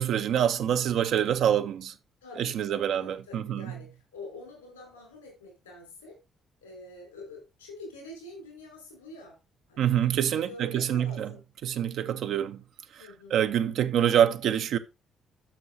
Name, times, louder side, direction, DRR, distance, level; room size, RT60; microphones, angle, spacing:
voice 1, 0.0-1.9 2.4-3.7 9.8-11.3 11.6-12.6 13.0-14.8, right 9 dB, 60° right, 0.7 m, -26 dB
voice 2, 2.2-6.2 6.6-9.4 9.7-11.4 13.0-13.8, left 2 dB, 85° left, 4.7 m, -46 dB
11.5 x 6.3 x 2.7 m
figure-of-eight pair, 45°, 0 cm